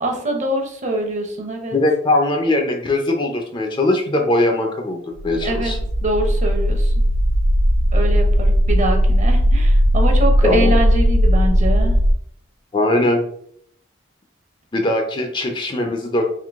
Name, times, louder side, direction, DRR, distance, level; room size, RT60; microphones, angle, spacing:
voice 1, 0.0-1.8 5.4-6.9 7.9-11.9, right 1 dB, 35° right, 3 dB, 0.7 m, -24 dB
voice 2, 1.7-5.8 10.4-10.7 12.7-13.2 14.7-16.2, left 2 dB, 25° left, 3 dB, 0.4 m, -20 dB
sound 1, 5.2-12.1, equal, 90° right, 0.5 m, -17 dB
3.8 x 2.7 x 3.5 m, 0.67 s
head